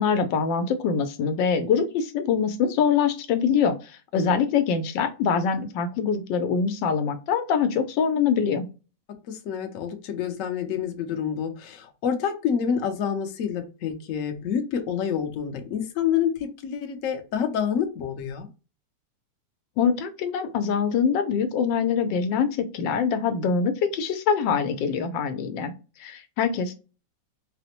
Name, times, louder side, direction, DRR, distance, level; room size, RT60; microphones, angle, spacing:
voice 1, 0.0-3.7 4.1-8.7 19.8-25.7 26.0-26.7, left 6 dB, 80° left, 8 dB, 1.3 m, -24 dB
voice 2, 9.3-18.5, left 8 dB, 60° left, 5 dB, 0.8 m, -28 dB
4.1 x 2.0 x 2.9 m, 0.32 s
omnidirectional pair, 2.0 m